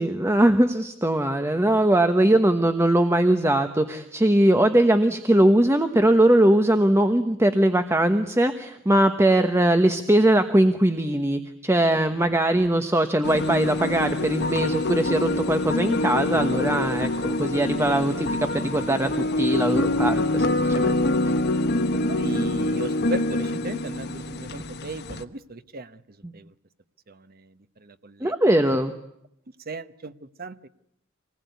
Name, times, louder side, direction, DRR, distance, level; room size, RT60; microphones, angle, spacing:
voice 1, 0.0-19.1 19.4-20.5 20.7-20.9 21.2-21.3 26.2-26.3 28.2-28.9, right 1 dB, 15° right, 8 dB, 1.1 m, -21 dB
sound 1, 13.2-25.2, left 2 dB, 55° left, 1.2 m, -25 dB
voice 2, 22.1-26.0 26.3-26.5 27.1-28.3 29.7-30.7, right 2 dB, 45° right, 12 dB, 1.0 m, -36 dB
26.5 x 20.0 x 9.5 m, 0.79 s
head